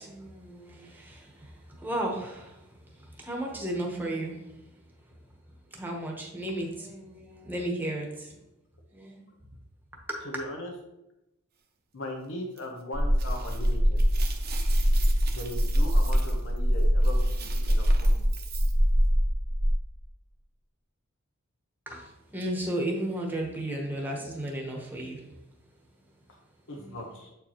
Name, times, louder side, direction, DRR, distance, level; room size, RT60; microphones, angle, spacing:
voice 1, 0.0-4.5 5.7-8.3 8.9-9.2 10.1-10.3 21.9-25.2 26.7-27.0, right 1 dB, 10° right, -1 dB, 1.2 m, -34 dB
voice 2, 10.2-10.7 11.9-14.0 15.3-18.3 26.7-27.3, left 1 dB, 65° left, 1 dB, 1.0 m, -39 dB
sound 1, 12.6-12.7 13.2-18.7, right 7 dB, 50° right, 0.8 m, -43 dB
sound 2, 12.9-19.7, equal, 15° left, 0.7 m, -23 dB
7.7 x 4.5 x 3.0 m, 0.91 s
head